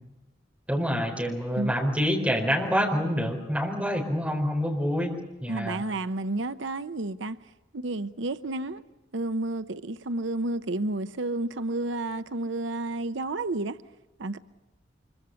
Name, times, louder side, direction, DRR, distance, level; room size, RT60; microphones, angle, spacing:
voice 1, 0.7-5.1 5.4-5.8, equal, 5° right, 4.3 m, -27 dB
voice 2, 5.5-7.4 7.7-8.8 9.1-13.8 14.2-14.4, right 2 dB, 85° right, 0.8 m, -31 dB
25.0 x 23.5 x 7.0 m
head